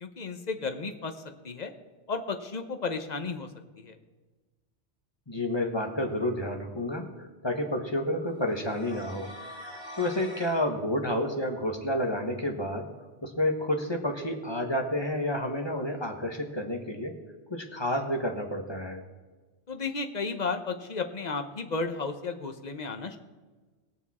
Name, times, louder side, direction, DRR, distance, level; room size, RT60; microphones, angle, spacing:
voice 1, 0.0-1.1 1.4-1.7 2.1-3.5 3.8-4.0 19.7-23.2, left 4 dB, 40° left, 7 dB, 1.0 m, -33 dB
voice 2, 5.3-9.3 9.9-12.9 13.2-17.2 17.5-19.0, left 1 dB, 25° left, 3 dB, 1.3 m, -30 dB
sound 1, 8.4-10.6, equal, 40° right, 5.1 m, -44 dB
20.5 x 7.0 x 4.2 m, 1.3 s
omnidirectional pair, 1.2 m